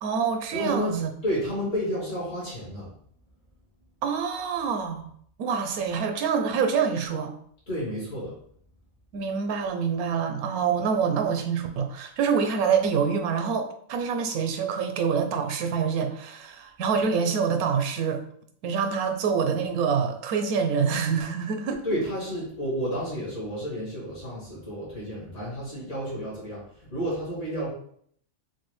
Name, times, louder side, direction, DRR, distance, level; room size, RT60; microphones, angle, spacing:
voice 1, 0.0-1.1 4.0-5.1 5.4-7.3 9.1-18.2 18.6-21.8, right 6 dB, 85° right, 6 dB, 1.1 m, -26 dB
voice 2, 0.5-1.0 1.2-2.9 7.7-8.3 21.8-27.7, equal, 60° left, -7 dB, 2.2 m, -31 dB
6.1 x 2.2 x 3.1 m, 0.64 s
omnidirectional pair, 1.5 m